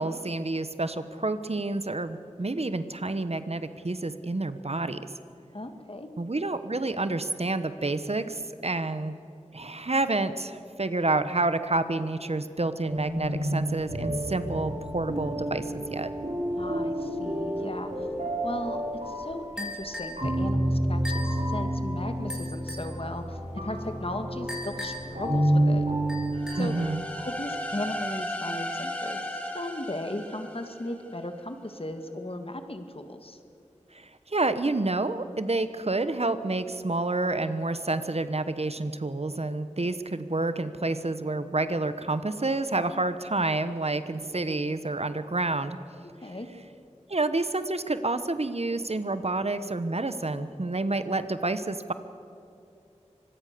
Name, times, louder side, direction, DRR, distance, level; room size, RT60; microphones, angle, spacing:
voice 1, 0.0-5.0 6.2-9.2 9.5-16.1 26.6-27.0 33.9-45.8 47.1-51.9, right 2 dB, 55° right, 11 dB, 1.2 m, -29 dB
voice 2, 5.5-6.1 16.6-18.1 18.4-25.8 26.5-26.7 27.3-33.4 46.2-46.5, left 1 dB, 50° left, 7 dB, 2.1 m, -37 dB
sound 1, 12.8-27.2, right 1 dB, 75° right, 6.3 m, -30 dB
sound 2, 19.6-20.2 21.0-21.4 22.3-22.9 24.5-25.2 26.1-26.8, left 1 dB, 5° right, 5.4 m, -38 dB
sound 3, 26.3-31.2, equal, 10° left, 3.5 m, -35 dB
24.5 x 21.5 x 6.9 m, 2.7 s
wide cardioid pair, 50°, 12 cm